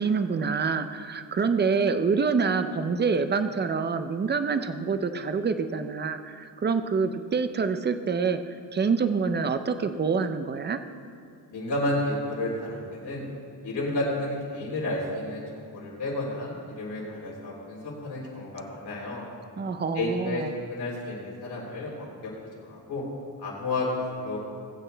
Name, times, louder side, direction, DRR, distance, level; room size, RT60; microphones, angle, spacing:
voice 1, 0.0-8.4 8.7-10.8 19.6-20.5, right 5 dB, 25° right, 9 dB, 0.5 m, -26 dB
voice 2, 11.5-13.2 13.6-19.2 19.9-20.4 20.7-22.3 22.6-23.0 23.4-24.4, left 2 dB, 75° left, -5 dB, 3.3 m, -31 dB
21.0 x 8.5 x 3.4 m, 2.4 s
wide cardioid pair, 160°, 41 cm